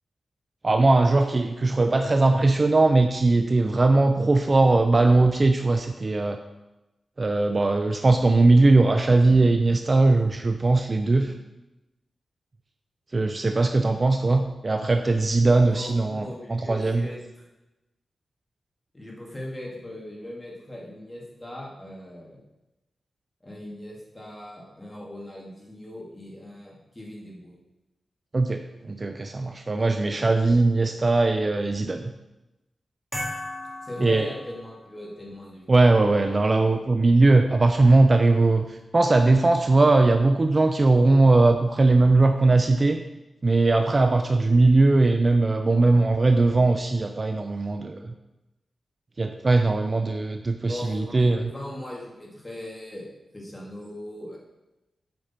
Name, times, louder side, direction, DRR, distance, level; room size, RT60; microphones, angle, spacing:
voice 1, 0.6-6.4 7.2-11.3 13.1-17.1 28.3-32.0 34.0-34.3 35.7-43.0 43.4-48.1 49.2-51.4, right 2 dB, 35° right, 6 dB, 0.4 m, -20 dB
voice 2, 15.7-17.2 18.9-22.4 23.4-27.6 33.8-35.9 36.1-36.3 50.7-54.4, left 1 dB, 15° left, -4 dB, 2.3 m, -39 dB
sound 1, 33.1-35.0, left 1 dB, ahead, 2.7 m, -36 dB
7.9 x 5.3 x 4.3 m, 0.99 s
wide cardioid pair, 100°, 0 cm